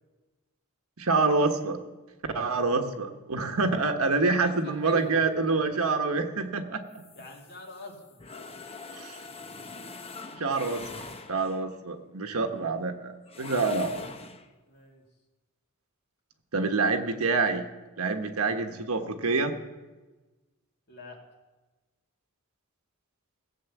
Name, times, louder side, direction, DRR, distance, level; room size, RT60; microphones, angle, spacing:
voice 1, 1.0-1.8 2.3-7.0 8.9-9.2 10.4-10.8 11.3-13.9 16.5-17.7 18.0-19.5, right 3 dB, 75° right, 6 dB, 1.2 m, -27 dB
voice 2, 2.4-2.8 4.0-5.2 7.1-8.2 12.3-12.5 14.7-15.0 20.9-21.2, left 1 dB, 50° left, 0 dB, 2.7 m, -45 dB
sound 1, 6.9-11.7 13.3-14.5, left 3 dB, 25° left, 0.8 m, -43 dB
16.5 x 7.8 x 7.2 m, 1.2 s
head